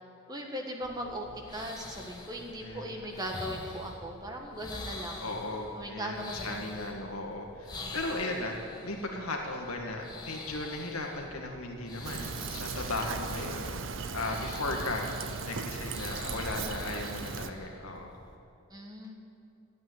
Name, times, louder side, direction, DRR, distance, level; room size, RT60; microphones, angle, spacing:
voice 1, 0.3-1.2 1.5-5.2 5.7-6.6 7.8-8.0 18.7-19.1, equal, 20° right, 1 dB, 1.4 m, -38 dB
sound 1, 0.8-18.3, left 2 dB, 20° left, 1.5 m, -45 dB
voice 2, 2.6-3.0 5.2-13.7 14.1-15.0 15.4-18.1, left 2 dB, 80° left, 1 dB, 1.9 m, -36 dB
Fill (with liquid), 12.0-17.5, right 5 dB, 60° right, 0.6 m, -38 dB
13.5 x 8.4 x 9.6 m, 2.6 s
head